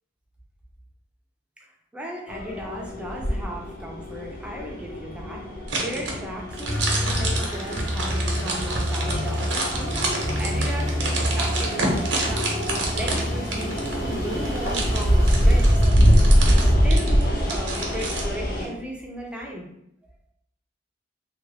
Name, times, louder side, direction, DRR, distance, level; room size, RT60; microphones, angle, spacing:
voice 1, 1.6-12.5 12.9-15.7 16.4-19.7, equal, 5° right, -2 dB, 0.6 m, -36 dB
sound 1, 2.3-18.7, equal, 55° left, 0.7 m, -24 dB
sound 2, 5.7-18.3, right 2 dB, 70° right, 0.8 m, -30 dB
sound 3, 6.6-15.7, equal, 85° left, 1.1 m, -29 dB
3.2 x 2.5 x 3.3 m, 0.76 s
head